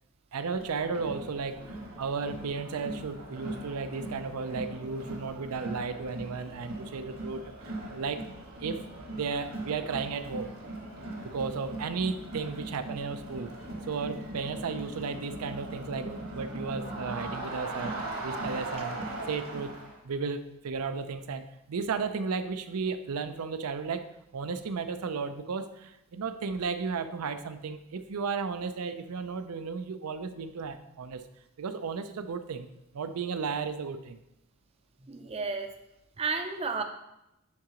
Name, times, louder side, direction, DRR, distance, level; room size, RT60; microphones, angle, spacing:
voice 1, 0.3-8.2 8.6-8.8 9.1-10.5 11.2-13.5 13.9-18.0 18.2-19.0 19.3-19.7 20.0-31.2 31.6-32.7 32.9-34.2, right 5 dB, 85° right, 10 dB, 0.5 m, -34 dB
Crowd, 0.5-20.0, right 1 dB, 65° right, 1.4 m, -40 dB
voice 2, 35.0-35.7 36.2-36.8, right 4 dB, 25° right, 6 dB, 0.5 m, -32 dB
10.5 x 3.7 x 2.9 m, 0.87 s
head